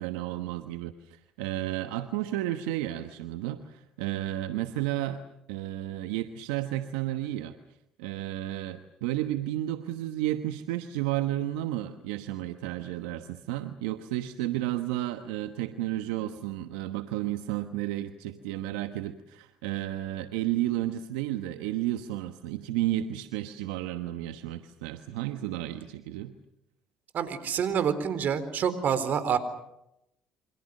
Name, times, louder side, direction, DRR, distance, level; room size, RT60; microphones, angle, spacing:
voice 1, 0.0-5.2 5.5-7.6 8.0-26.3, right 14 dB, 90° right, 9 dB, 1.2 m, -32 dB
voice 2, 27.1-29.4, right 7 dB, 60° right, 13 dB, 4.0 m, -27 dB
28.5 x 25.5 x 6.6 m, 0.83 s
supercardioid pair, 65°, 3 cm